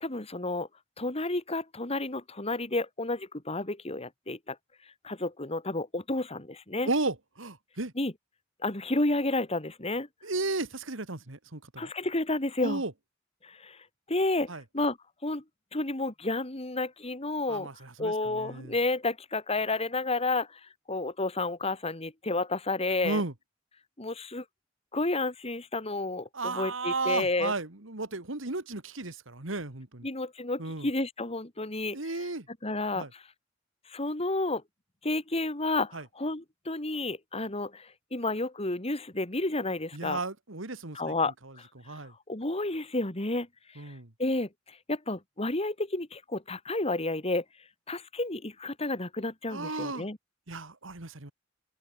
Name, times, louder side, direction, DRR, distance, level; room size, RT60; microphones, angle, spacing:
voice 1, 0.0-0.7 1.0-4.6 5.0-6.9 8.0-8.1 8.6-10.1 11.8-12.8 13.4-13.8 14.1-15.0 15.2-15.4 15.7-17.7 18.0-20.6 20.9-23.2 24.0-24.4 24.9-27.5 30.0-32.2 32.6-33.2 33.9-34.6 35.0-40.2 40.9-41.7 42.3-43.5 43.9-44.0 44.2-47.4 47.9-50.2, left 2 dB, 30° left, 2.8 m, -31 dB
voice 2, 6.9-7.9 10.2-11.9 12.6-12.9 14.5-14.6 17.5-18.7 23.0-23.3 26.3-30.1 30.6-30.9 31.9-32.5 32.9-33.1 35.9-36.1 39.9-41.1 41.4-42.1 43.8-44.1 49.5-50.1 50.5-51.3, right 3 dB, 75° right, 2.3 m, -34 dB
open air
head